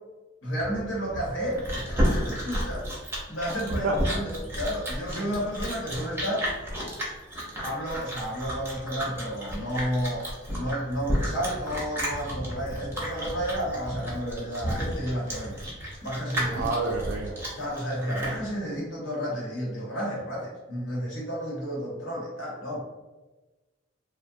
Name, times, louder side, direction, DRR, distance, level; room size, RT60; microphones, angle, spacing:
voice 1, 0.4-6.5 7.6-15.6 16.0-16.7 17.6-22.8, equal, 80° left, -5 dB, 1.0 m, -32 dB
sound 1, 0.6-17.7, equal, 35° left, 1.0 m, -43 dB
Chewing mastication, 1.2-18.4, equal, 10° right, 0.6 m, -32 dB
voice 2, 16.5-17.4, right 2 dB, 80° right, -1 dB, 0.4 m, -28 dB
2.6 x 2.1 x 2.6 m, 1.2 s
head